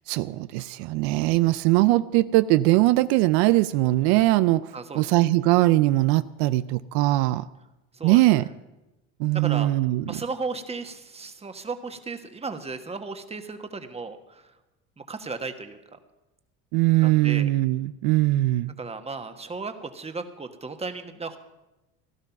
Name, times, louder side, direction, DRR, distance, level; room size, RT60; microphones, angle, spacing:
voice 1, 0.1-7.5 8.0-8.5 9.2-10.2 16.7-18.7, right 17 dB, 85° right, 14 dB, 0.5 m, -21 dB
voice 2, 4.7-5.0 7.9-8.2 9.3-9.7 10.1-14.5 15.1-15.8 17.0-17.5 18.8-21.4, right 4 dB, 20° right, 7 dB, 1.5 m, -35 dB
16.5 x 12.0 x 5.9 m, 1.0 s
supercardioid pair, 95°, 31 cm